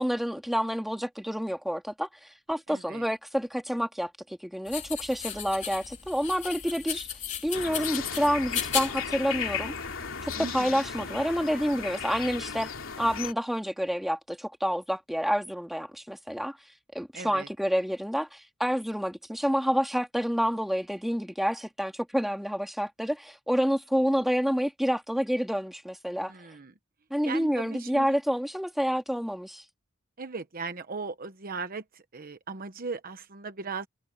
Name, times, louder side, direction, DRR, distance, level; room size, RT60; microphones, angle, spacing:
voice 1, 0.0-2.1 2.5-7.1 7.4-9.7 10.4-12.7 13.0-16.6 16.9-26.3 27.1-29.6, equal, ahead, 2.6 m, -28 dB
voice 2, 2.7-3.0 10.4-10.9 17.1-17.5 26.2-26.7 27.2-28.2 30.2-33.9, right 4 dB, 45° right, 1.0 m, -38 dB
sound 1, 4.7-10.4, left 8 dB, 35° left, 3.8 m, -36 dB
sound 2, 7.5-13.3, left 6 dB, 80° left, 2.8 m, -35 dB
head